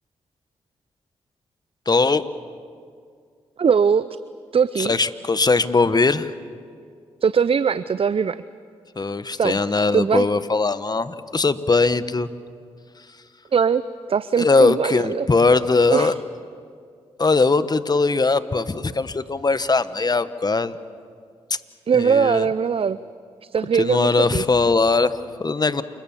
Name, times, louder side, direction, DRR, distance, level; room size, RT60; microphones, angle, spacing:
voice 1, 1.9-2.2 4.8-6.3 9.0-12.3 14.4-16.2 17.2-20.8 21.5-21.6 21.9-22.5 23.7-25.8, left 3 dB, 35° left, 13 dB, 1.2 m, -20 dB
voice 2, 3.6-4.1 4.5-4.9 7.2-8.4 9.4-9.6 9.9-10.3 13.5-15.3 15.9-16.1 21.9-23.0 23.4-24.4, right 6 dB, 50° right, 15 dB, 0.6 m, -20 dB
29.0 x 21.0 x 7.3 m, 2.2 s
supercardioid pair, 45°, 12 cm